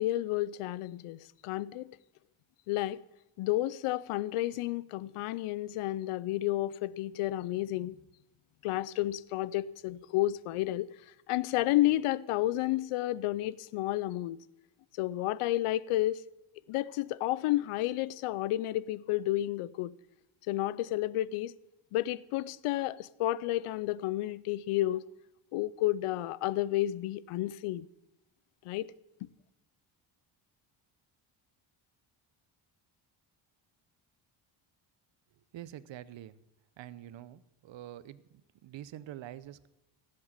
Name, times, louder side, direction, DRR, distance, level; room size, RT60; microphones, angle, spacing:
voice 1, 0.0-1.9 2.7-3.0 3.4-8.0 8.6-10.9 11.3-14.4 14.9-16.2 16.7-19.9 20.5-21.5 21.9-25.0 25.5-27.9 28.6-28.9, left 15 dB, 85° left, 0.6 m, -31 dB
voice 2, 35.5-36.4 36.8-39.7, right 12 dB, 60° right, 0.8 m, -46 dB
15.0 x 7.7 x 7.3 m
cardioid pair, 95°, 50 cm